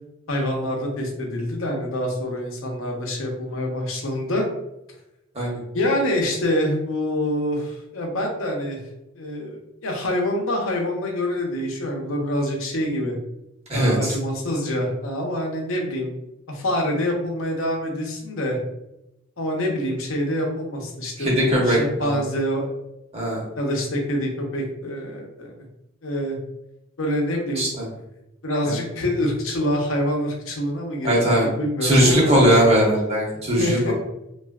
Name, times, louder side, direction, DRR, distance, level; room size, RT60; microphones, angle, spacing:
voice 1, 0.3-4.5 5.7-8.8 9.1-13.1 13.7-16.1 16.5-18.6 19.4-22.7 23.6-25.5 26.0-26.4 27.0-27.7 28.4-32.5 33.6-33.9, left 1 dB, 75° left, 0 dB, 0.7 m, -26 dB
voice 2, 13.7-14.1 21.2-22.2 23.1-23.4 27.6-27.8 28.6-28.8 31.0-31.5 31.8-33.9, right 1 dB, 30° right, -4 dB, 1.0 m, -19 dB
3.3 x 2.4 x 2.3 m, 0.89 s
head